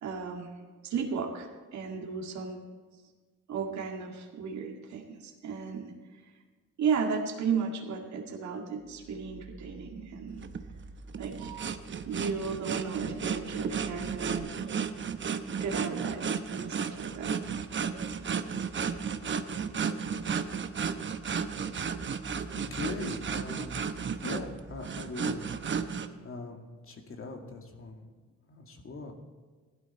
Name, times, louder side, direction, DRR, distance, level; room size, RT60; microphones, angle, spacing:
voice 1, 0.0-0.5 0.8-2.6 3.5-5.9 6.8-10.4 11.2-11.7 12.1-14.5 15.6-17.3, right 5 dB, 65° right, 0 dB, 2.0 m, -34 dB
sound 1, 8.8-14.4, right 1 dB, 75° left, 4.0 m, -51 dB
sound 2, 10.4-26.1, right 6 dB, 40° right, 0.9 m, -33 dB
voice 2, 22.7-23.8 24.2-25.4 26.2-28.0 28.5-29.1, left 3 dB, 45° left, 3 dB, 2.3 m, -40 dB
16.0 x 12.0 x 4.4 m, 1.4 s
cardioid pair, 90°, 30 cm